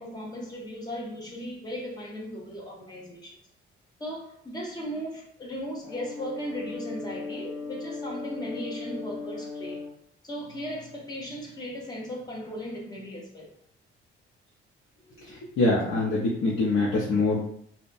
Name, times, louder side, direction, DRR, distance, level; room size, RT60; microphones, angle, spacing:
voice 1, 0.0-3.4 4.0-9.8 10.2-13.5, equal, 20° left, -3 dB, 0.6 m, -37 dB
Brass instrument, 5.8-10.0, left 4 dB, 35° left, 1.0 m, -37 dB
voice 2, 15.2-17.4, left 2 dB, 75° left, -6 dB, 0.7 m, -24 dB
2.7 x 2.1 x 2.4 m, 0.66 s
cardioid pair, 175°, 21 cm